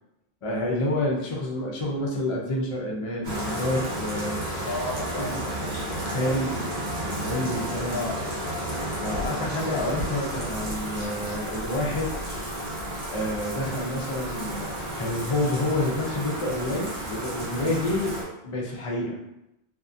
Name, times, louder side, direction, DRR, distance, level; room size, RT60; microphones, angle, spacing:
voice 1, 0.4-4.8 5.3-5.4 6.0-6.7 7.0-8.0 9.0-12.1 13.1-19.2, left 1 dB, 45° left, -2 dB, 0.4 m, -29 dB
Bathtub (filling or washing), 3.2-18.2, right 1 dB, 85° right, 1.2 m, -32 dB
voice 2, 4.6-6.4 7.9-8.2, left 3 dB, 70° left, -1 dB, 0.8 m, -34 dB
2.7 x 2.4 x 2.5 m, 0.86 s
omnidirectional pair, 1.1 m